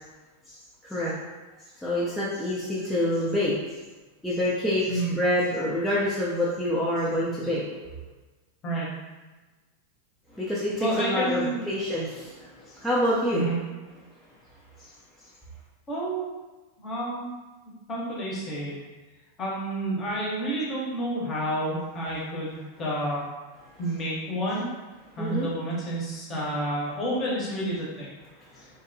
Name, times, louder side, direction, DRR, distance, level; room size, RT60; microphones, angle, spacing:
voice 1, 0.5-1.2 1.8-3.5 4.2-8.0 10.3-13.4 14.8-14.9 25.2-25.5 28.5-28.7, left 1 dB, 5° left, -9 dB, 0.5 m, -27 dB
voice 2, 10.8-11.6 13.3-13.6 15.9-16.3 16.8-17.3 17.9-18.7 19.4-23.2 23.8-24.7 25.2-28.1, right 1 dB, 25° left, -5 dB, 0.8 m, -29 dB
2.6 x 2.1 x 2.6 m, 1.2 s
figure-of-eight pair, 90°, 0 cm